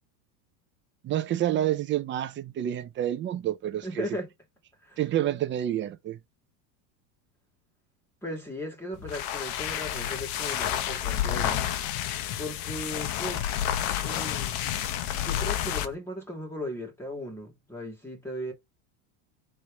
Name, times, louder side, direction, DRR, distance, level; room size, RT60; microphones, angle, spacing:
voice 1, 1.0-4.0 5.0-6.2, right 12 dB, 25° right, 0.6 m, -28 dB
voice 2, 3.8-4.3 4.8-5.0 8.2-11.7 12.4-13.4 14.0-14.6 15.1-18.5, left 1 dB, 5° left, 2.6 m, -37 dB
sound 1, 8.9-15.9, left 11 dB, 50° left, 0.9 m, -30 dB
4.2 x 3.3 x 3.5 m
supercardioid pair, 140°, 45 cm